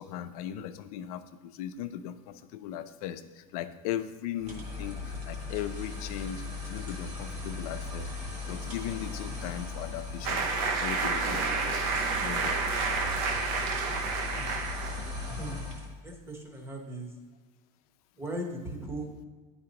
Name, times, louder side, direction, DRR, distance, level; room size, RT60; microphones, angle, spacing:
voice 1, 0.0-8.1 8.5-10.5 10.8-11.8 12.2-12.6, left 10 dB, 80° left, 10 dB, 0.5 m, -38 dB
sound 1, 4.4-15.9, left 3 dB, 35° right, 1.4 m, -38 dB
sound 2, 10.2-15.3, right 4 dB, 65° right, 0.7 m, -30 dB
voice 2, 16.0-17.1 18.2-19.1, right 1 dB, 15° right, 2 dB, 0.9 m, -37 dB
9.4 x 4.2 x 2.9 m, 1.4 s
supercardioid pair, 145°, 19 cm